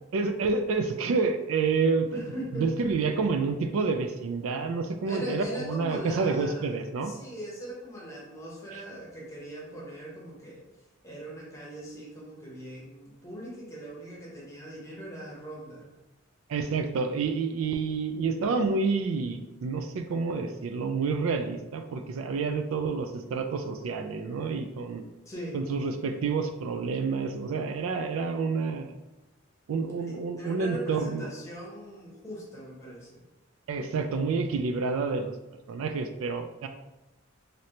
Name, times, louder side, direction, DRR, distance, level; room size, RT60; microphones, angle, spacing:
voice 1, 0.1-2.1 2.5-7.1 8.7-8.8 16.5-25.0 25.5-28.9 29.7-31.3 33.7-35.3 35.7-36.7, right 4 dB, 80° right, 7 dB, 0.3 m, -29 dB
voice 2, 2.1-2.9 5.1-6.7 7.0-10.6 11.0-15.9 25.3-25.6 30.4-33.2, equal, 15° left, -5 dB, 0.9 m, -40 dB
3.2 x 2.7 x 2.8 m, 1.0 s
head